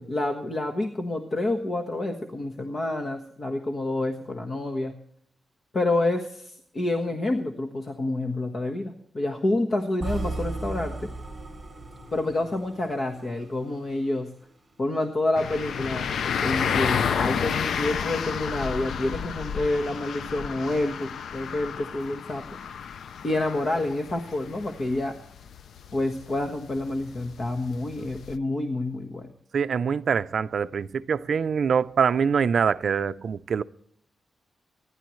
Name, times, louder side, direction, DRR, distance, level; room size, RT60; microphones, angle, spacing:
voice 1, 0.0-4.9 5.7-11.1 12.1-14.3 14.8-16.1 16.4-22.5 23.2-25.1 25.9-29.3, left 2 dB, 35° left, 1.3 m, -28 dB
sound 1, 10.0-14.1, right 2 dB, 15° right, 5.4 m, -36 dB
sound 2, 15.4-28.4, left 7 dB, 80° left, 0.5 m, -31 dB
voice 2, 29.5-33.6, right 6 dB, 55° right, 0.5 m, -24 dB
26.0 x 11.0 x 3.1 m
wide cardioid pair, 180°, 0 cm